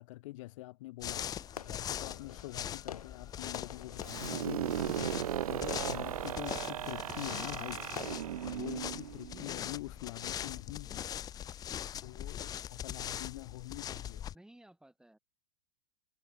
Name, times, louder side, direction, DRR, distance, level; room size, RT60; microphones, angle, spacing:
voice 1, 0.0-5.2 5.5-7.8 8.5-11.1 11.9-14.2, left 18 dB, 60° left, 1.6 m, -45 dB
sound 1, 1.0-14.3, left 10 dB, 20° left, 0.4 m, -41 dB
Fireworks, 1.1-9.2, left 9 dB, 80° left, 1.3 m, -50 dB
sound 2, 4.0-9.7, right 11 dB, 75° right, 1.0 m, -37 dB
voice 2, 7.2-7.6 9.3-9.6 14.3-15.2, right 1 dB, 5° right, 4.8 m, -56 dB
hypercardioid pair, 100°, 19 cm